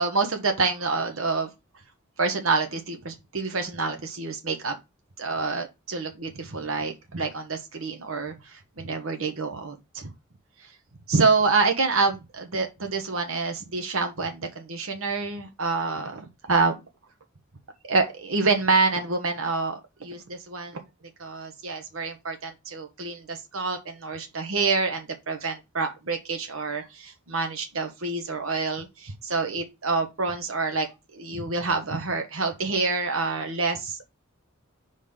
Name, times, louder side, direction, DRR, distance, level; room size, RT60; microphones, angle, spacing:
voice 1, 0.0-1.5 2.2-4.8 5.2-10.1 10.6-10.7 11.1-16.8 17.9-20.8 21.2-30.9 31.1-34.0, right 4 dB, 80° right, 1.1 m, -27 dB
5.1 x 4.1 x 5.5 m
head